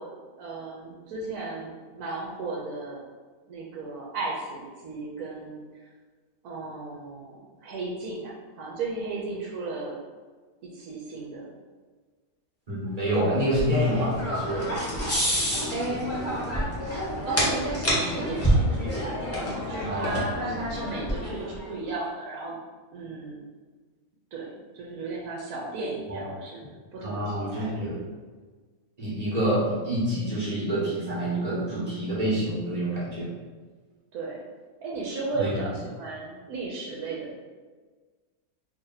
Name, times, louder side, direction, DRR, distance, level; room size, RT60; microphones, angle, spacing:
voice 1, 0.0-3.1 3.5-5.6 6.4-10.0 10.6-11.4 15.7-16.4 16.8-22.6 22.9-23.4 24.3-26.6 26.9-27.9 34.1-34.4 34.8-37.4, right 3 dB, 80° right, -3 dB, 1.1 m, -35 dB
voice 2, 12.7-14.7 19.8-20.2 26.1-26.2 27.0-28.0 29.0-33.3 35.4-35.5, right 1 dB, 30° right, -8 dB, 1.2 m, -27 dB
sound 1, 13.1-21.6, equal, 15° left, 0.7 m, -28 dB
2.8 x 2.8 x 3.9 m, 1.4 s
omnidirectional pair, 1.6 m